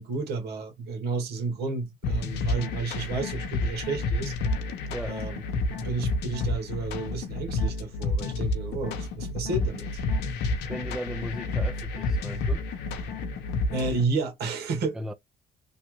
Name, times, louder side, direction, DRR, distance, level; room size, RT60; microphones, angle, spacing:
voice 1, 0.0-4.3 5.1-10.0 13.7-15.0, right 3 dB, 70° right, 1.4 m, -31 dB
sound 1, 2.0-14.0, left 2 dB, 80° left, 0.8 m, -30 dB
voice 2, 4.9-5.2 10.7-12.7 14.9-15.1, equal, 5° right, 0.3 m, -36 dB
3.2 x 2.4 x 3.1 m
cardioid pair, 110°, 17 cm